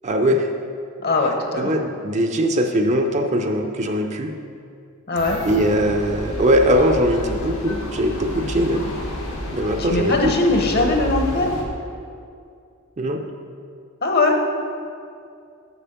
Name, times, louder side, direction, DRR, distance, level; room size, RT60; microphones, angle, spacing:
voice 1, 0.0-0.5 1.6-4.3 5.4-8.9 9.5-10.1 13.0-13.2, equal, 35° right, 5 dB, 0.5 m, -20 dB
voice 2, 1.0-1.7 5.1-5.4 9.8-11.5 14.0-14.4, left 2 dB, 50° left, 3 dB, 1.0 m, -20 dB
sound 1, 5.2-11.6, left 1 dB, 80° left, 1.5 m, -30 dB
7.0 x 7.0 x 5.9 m, 2.4 s
head